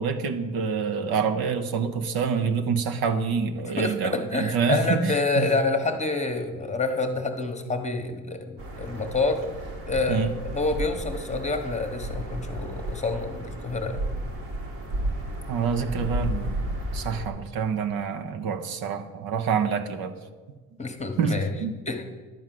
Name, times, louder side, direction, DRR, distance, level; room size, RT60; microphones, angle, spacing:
voice 1, 0.0-5.5 10.1-10.3 15.5-16.6 16.9-20.1 21.2-21.3 21.6-21.7, right 6 dB, 60° right, 7 dB, 1.0 m, -26 dB
voice 2, 3.7-9.4 9.9-14.0 20.8-21.5 21.9-22.0, left 3 dB, 15° left, 5 dB, 1.2 m, -28 dB
sound 1, 8.6-17.3, right 1 dB, 80° right, 2.2 m, -33 dB
11.0 x 4.7 x 7.7 m, 1.4 s
supercardioid pair, 80°, 41 cm